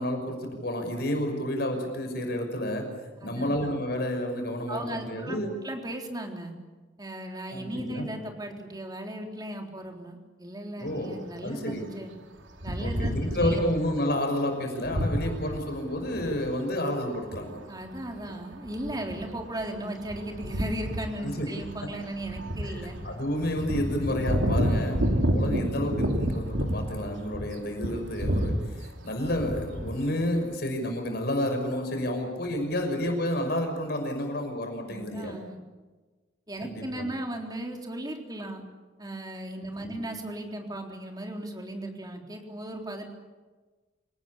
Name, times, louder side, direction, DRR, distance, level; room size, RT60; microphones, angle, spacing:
voice 1, 0.0-5.5 7.5-8.1 10.8-11.9 12.7-17.6 21.2-21.5 22.6-22.8 23.0-35.3 36.6-37.1 39.8-40.0, left 1 dB, 55° left, 4 dB, 6.1 m, -30 dB
voice 2, 3.2-3.6 4.7-5.4 5.6-6.6 7.0-12.1 12.6-13.6 17.7-23.0 24.6-25.0 34.9-35.5 36.5-38.6 39.0-43.1, right 1 dB, 20° right, 2 dB, 3.8 m, -37 dB
sound 1, 12.6-13.9 14.8-16.5 17.2-17.4 17.8-27.5 27.8-28.7 29.2-29.9, equal, 80° right, 3.1 m, -29 dB
27.5 x 19.0 x 8.6 m, 1.3 s
head